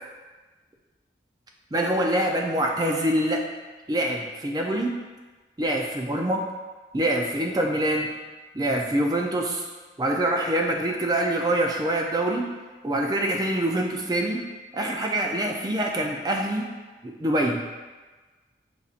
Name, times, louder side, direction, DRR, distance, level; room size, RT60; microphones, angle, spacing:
voice 1, 1.7-3.4 3.9-4.9 5.6-6.5 6.9-8.1 8.5-9.6 10.0-12.5 12.8-14.4 14.7-16.7 17.0-17.6, right 1 dB, 20° right, 1 dB, 0.4 m, -25 dB
6.7 x 2.6 x 2.4 m, 1.3 s
head